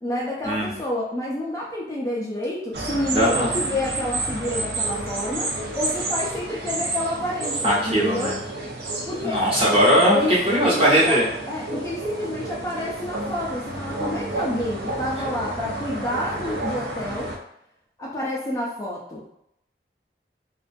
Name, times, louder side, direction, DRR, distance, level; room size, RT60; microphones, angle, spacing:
voice 1, 0.0-8.3 9.1-9.4 10.1-11.2 11.5-17.3 18.0-19.2, left 1 dB, 20° left, -5 dB, 0.3 m, -29 dB
sound 1, 2.7-17.4, right 2 dB, 65° right, 0.5 m, -30 dB
voice 2, 3.1-3.6 7.6-8.4 9.2-11.3, equal, 30° right, -8 dB, 0.9 m, -19 dB
2.4 x 2.2 x 2.5 m, 0.76 s
head